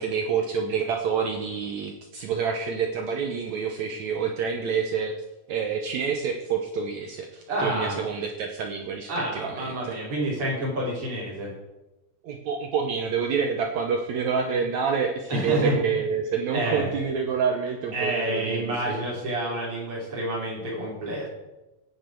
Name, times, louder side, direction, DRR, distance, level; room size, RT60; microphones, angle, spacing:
voice 1, 0.0-5.1 5.5-10.0 12.2-19.0, right 6 dB, 70° right, 3 dB, 1.9 m, -28 dB
voice 2, 7.5-8.0 9.1-11.5 15.3-15.8 16.5-16.9 17.9-21.3, right 1 dB, 40° right, -5 dB, 5.0 m, -28 dB
15.5 x 9.3 x 4.6 m, 1.0 s
omnidirectional pair, 4.1 m